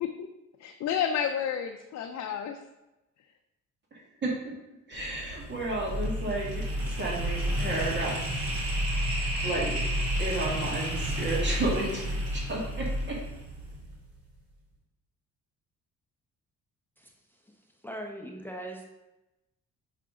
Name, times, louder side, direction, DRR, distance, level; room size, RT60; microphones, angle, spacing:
voice 1, 0.6-2.6, left 8 dB, 60° left, 4 dB, 0.5 m, -30 dB
voice 2, 3.9-4.5 4.9-8.5 9.4-9.8 10.2-13.2, right 2 dB, 35° right, -3 dB, 2.0 m, -33 dB
sound 1, 4.9-14.1, equal, 70° right, 1.9 m, -31 dB
voice 3, 17.0-17.5 17.8-18.8, right 1 dB, 5° left, 0 dB, 0.8 m, -41 dB
5.8 x 4.9 x 3.7 m, 0.97 s
cardioid pair, 90°, 30 cm